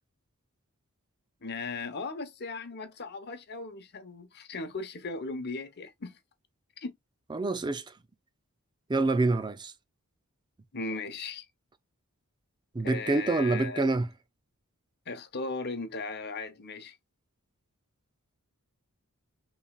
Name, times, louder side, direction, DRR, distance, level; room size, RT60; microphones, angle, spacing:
voice 1, 1.4-6.2 6.8-7.0 10.7-11.5 12.8-13.9 15.1-17.0, left 3 dB, 50° left, 0.9 m, -37 dB
voice 2, 7.3-7.8 8.9-9.7 12.7-14.1, right 2 dB, 20° right, 0.4 m, -26 dB
5.5 x 3.1 x 2.3 m
head